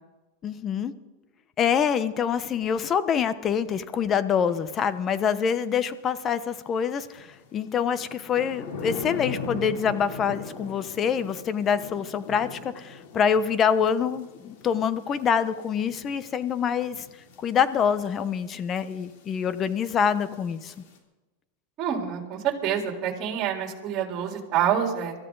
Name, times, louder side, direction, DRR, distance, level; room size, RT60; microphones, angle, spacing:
voice 1, 0.4-0.9 1.6-17.1 17.4-20.7, left 7 dB, 30° left, 13 dB, 1.0 m, -25 dB
sound 1, 4.7-4.9 7.1-21.0, left 5 dB, 70° left, 3.4 m, -41 dB
voice 2, 21.8-25.1, right 9 dB, 40° right, 2 dB, 3.8 m, -27 dB
24.0 x 14.5 x 4.0 m, 1.1 s
supercardioid pair, 125°, 0 cm